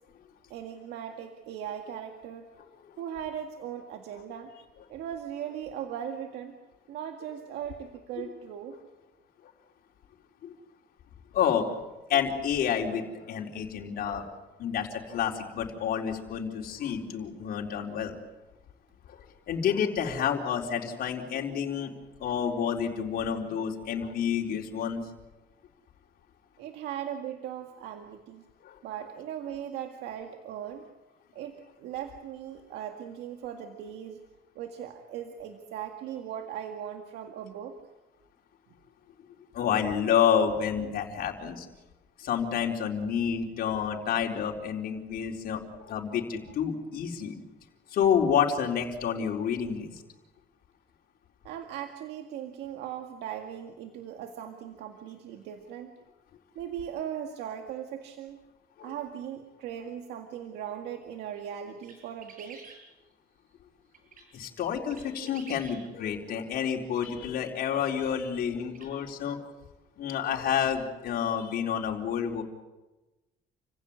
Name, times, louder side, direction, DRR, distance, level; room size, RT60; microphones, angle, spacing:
voice 1, 0.5-2.5 3.0-4.5 4.9-6.5 6.9-8.8 26.6-28.4 28.8-30.9 31.3-34.2 34.6-37.8 51.4-55.9 56.6-58.4 58.8-62.6, right 9 dB, 80° right, 5 dB, 2.0 m, -38 dB
voice 2, 11.3-11.8 12.1-14.3 14.6-18.1 19.1-19.2 19.5-21.9 22.2-25.1 28.6-28.7 39.5-41.7 42.2-47.3 47.9-49.9 58.8-58.9 64.3-69.4 70.0-72.4, left 8 dB, 65° left, 1 dB, 4.2 m, -29 dB
sound 1, 61.8-62.8 63.9-64.3 64.9-65.8 67.0-67.1 68.2-68.3 68.7-68.9, right 5 dB, 55° right, 7.6 m, -49 dB
29.0 x 16.5 x 9.8 m, 1.1 s
cardioid pair, 110°, 17 cm